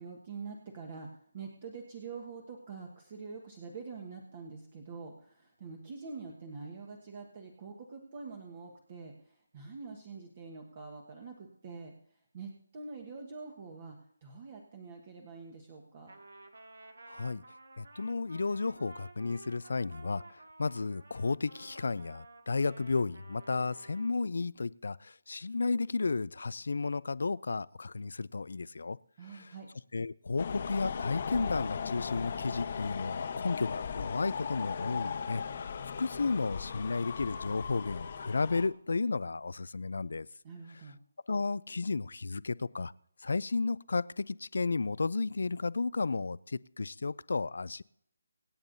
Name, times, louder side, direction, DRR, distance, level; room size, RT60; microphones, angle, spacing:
voice 1, 0.0-16.2 29.2-29.7 40.4-41.0, right 4 dB, 30° right, 1.4 m, -45 dB
Trumpet, 16.1-24.2, right 2 dB, 80° right, 2.1 m, -53 dB
voice 2, 17.1-17.4 17.8-20.2 20.6-29.0 29.3-29.5 29.9-35.7 36.0-40.3 41.3-42.9 43.2-47.8, left 4 dB, 65° left, 0.4 m, -33 dB
sound 1, 30.4-38.7, left 6 dB, 40° left, 1.0 m, -37 dB
25.0 x 8.8 x 2.7 m
figure-of-eight pair, 165°, 0 cm